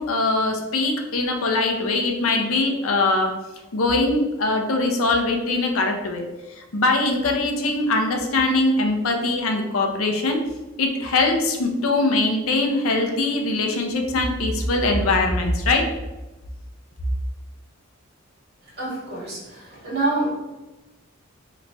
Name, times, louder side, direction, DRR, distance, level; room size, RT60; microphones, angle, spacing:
voice 1, 0.0-3.3 3.7-6.2 6.7-10.4 10.8-15.8, left 2 dB, 85° left, 3 dB, 0.6 m, -22 dB
voice 2, 18.8-20.3, right 2 dB, 50° right, -5 dB, 1.4 m, -26 dB
3.1 x 2.2 x 3.9 m, 1.1 s
head